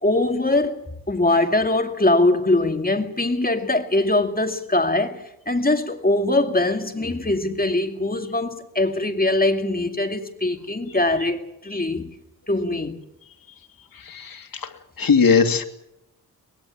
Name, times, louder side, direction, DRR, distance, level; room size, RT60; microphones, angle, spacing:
voice 1, 0.0-12.1 12.5-13.0, left 2 dB, 25° left, 2.5 m, -22 dB
voice 2, 14.1-14.7 15.0-15.6, left 5 dB, 70° left, 2.4 m, -19 dB
24.0 x 20.5 x 7.3 m
cardioid pair, 65°, 35 cm